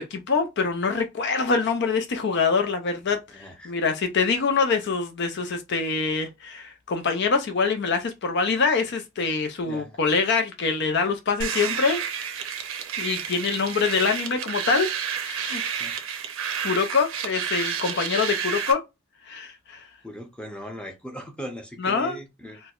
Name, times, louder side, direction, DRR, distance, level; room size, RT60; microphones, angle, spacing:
voice 1, 0.0-12.3 13.0-14.9 15.2-15.9 16.6-18.8 19.3-19.9 21.8-22.2, left 4 dB, 50° left, 0.4 m, -25 dB
voice 2, 3.3-3.7 9.6-10.0 15.8-15.9 20.0-22.6, equal, 5° left, 0.6 m, -39 dB
sound 1, 11.4-18.7, right 7 dB, 65° right, 0.7 m, -30 dB
4.4 x 2.1 x 2.4 m
head